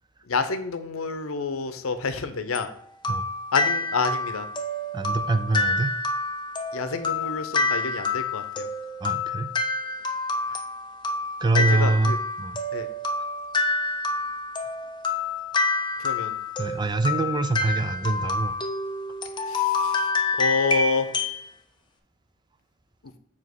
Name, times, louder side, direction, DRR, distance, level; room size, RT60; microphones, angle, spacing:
voice 1, 0.3-2.7 3.5-4.5 6.7-8.7 11.5-12.2 12.7-12.9 16.0-16.4 19.5-20.1 20.4-21.1, left 4 dB, 90° left, 10 dB, 0.7 m, -28 dB
sound 1, 2.5-21.4, left 3 dB, 20° left, 0.7 m, -28 dB
voice 2, 4.9-5.9 9.0-9.5 10.5-10.6 11.4-12.1 12.4-12.6 16.6-18.5, right 2 dB, 20° right, 10 dB, 0.4 m, -24 dB
7.2 x 3.0 x 6.0 m, 0.73 s
head